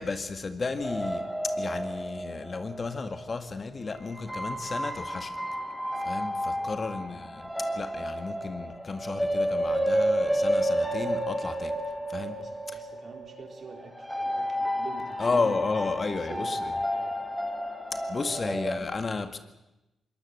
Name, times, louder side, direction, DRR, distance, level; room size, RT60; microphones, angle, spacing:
voice 1, 0.0-5.4 6.1-11.8 12.1-12.4 12.7-12.8 15.2-16.8 17.9-19.4, left 4 dB, 40° left, 9 dB, 1.9 m, -33 dB
sound 1, 0.8-3.3 4.1-18.8, equal, ahead, 4.7 m, -31 dB
voice 2, 6.4-6.9 12.3-15.6 15.9-17.2 18.2-18.4, right 4 dB, 55° right, 4 dB, 4.0 m, -47 dB
22.0 x 19.5 x 7.9 m, 0.96 s
supercardioid pair, 60°, 0 cm